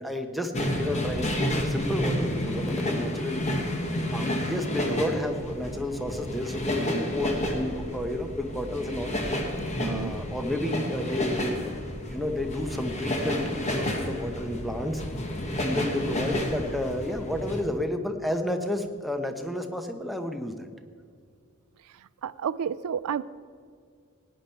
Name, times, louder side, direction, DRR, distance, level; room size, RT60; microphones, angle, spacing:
voice 1, 0.0-3.5 4.1-9.2 9.8-11.6 12.1-15.0 15.6-20.7, left 1 dB, ahead, 5 dB, 0.8 m, -31 dB
sound 1, 0.5-17.6, left 1 dB, 30° left, 1.4 m, -30 dB
voice 2, 9.8-10.1 22.2-23.2, right 7 dB, 85° right, 18 dB, 0.4 m, -30 dB
17.0 x 10.0 x 4.5 m, 2.1 s
head